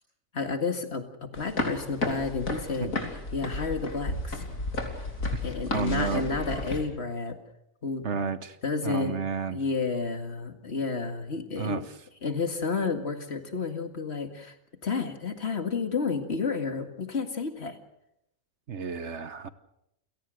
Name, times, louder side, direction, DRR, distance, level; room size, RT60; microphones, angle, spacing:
voice 1, 0.3-2.9 3.3-4.4 5.4-7.4 7.8-8.3 8.6-9.2 9.5-11.8 12.2-14.6 14.8-17.8, left 4 dB, 55° left, 7 dB, 2.3 m, -31 dB
sound 1, 1.3-6.8, left 2 dB, 90° left, 3.5 m, -33 dB
voice 2, 5.7-6.2 8.0-8.6 8.8-9.6 11.6-11.8 18.7-19.5, right 6 dB, 60° right, 13 dB, 1.3 m, -31 dB
29.5 x 17.5 x 6.5 m, 0.81 s
omnidirectional pair, 1.4 m